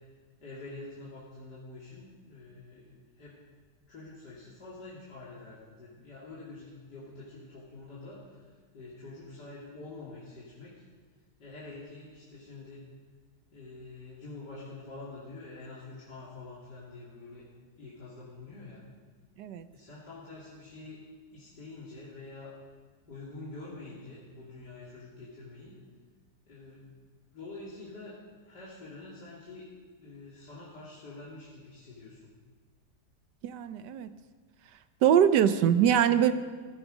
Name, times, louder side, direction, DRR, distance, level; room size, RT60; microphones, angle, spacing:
voice 1, 0.4-3.4 3.9-10.8 11.4-12.8 13.5-17.5 17.8-18.8 19.7-21.0 21.3-22.5 23.1-25.8 26.5-27.0 27.3-29.7 30.0-32.3, left 2 dB, 75° left, -8 dB, 3.2 m, -46 dB
voice 2, 33.4-34.1 35.0-36.3, right 9 dB, 85° right, 12 dB, 1.4 m, -23 dB
16.0 x 13.0 x 5.1 m, 1.5 s
omnidirectional pair, 1.8 m